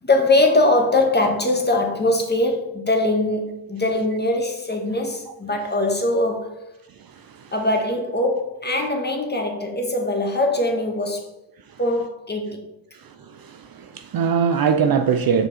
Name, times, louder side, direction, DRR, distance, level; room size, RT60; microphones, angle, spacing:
voice 1, 0.0-6.6 7.5-11.3 11.8-12.7, left 2 dB, 20° left, 1.5 m, -21 dB
voice 2, 13.3-15.5, right 6 dB, 50° right, 0.6 m, -21 dB
6.0 x 5.0 x 4.3 m
cardioid pair, 70°, 48 cm